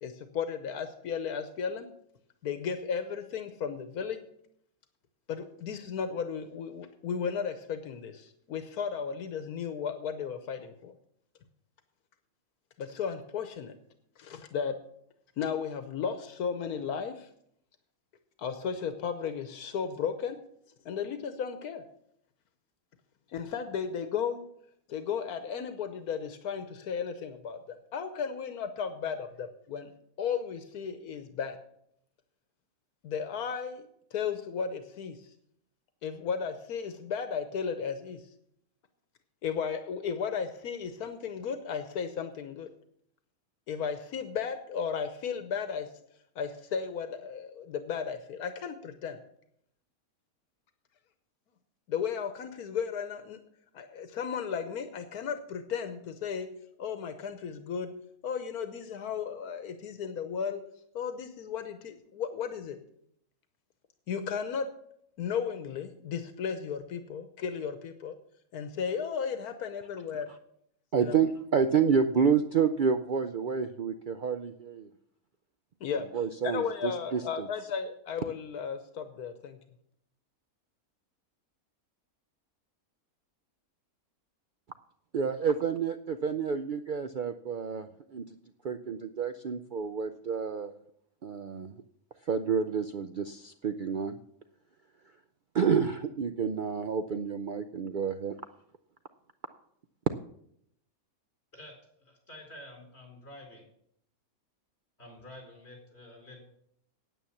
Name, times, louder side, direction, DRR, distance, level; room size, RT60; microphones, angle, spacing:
voice 1, 0.0-1.9 2.4-4.2 5.3-10.9 12.8-13.8 14.2-14.8 15.4-17.3 18.4-20.4 20.8-21.8 23.3-24.4 24.9-29.9 30.2-31.6 33.0-33.8 34.1-35.3 36.0-38.2 39.4-42.7 43.7-45.9 46.4-49.2 51.9-53.4 53.7-56.5 56.8-57.9 58.2-60.6 60.9-62.8 64.1-64.7 65.2-68.2 68.5-70.3 71.0-71.2 75.8-76.1 76.4-79.6, left 6 dB, 85° left, 9 dB, 1.4 m, -34 dB
voice 2, 70.9-74.9 76.1-77.5 85.1-88.2 88.6-90.7 91.2-91.8 92.3-94.2 95.5-98.4, right 6 dB, 85° right, 9 dB, 0.4 m, -29 dB
voice 3, 102.0-103.6 105.0-106.4, left 1 dB, 45° left, 1 dB, 4.4 m, -49 dB
9.3 x 9.0 x 7.1 m, 0.71 s
omnidirectional pair, 1.6 m